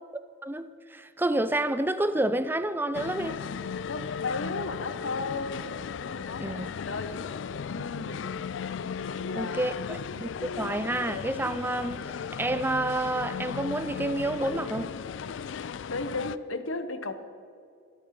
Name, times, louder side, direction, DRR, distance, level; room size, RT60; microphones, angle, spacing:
voice 1, 0.4-3.4 6.4-6.7 9.3-12.0 12.4-14.9, right 1 dB, 10° right, 0.4 m, -29 dB
sound 1, 2.9-16.4, left 6 dB, 65° left, 0.4 m, -36 dB
voice 2, 3.9-5.7 6.0-7.2 7.7-8.3 9.0-10.0 15.9-17.1, left 3 dB, 90° left, 1.0 m, -35 dB
13.0 x 12.5 x 5.9 m
head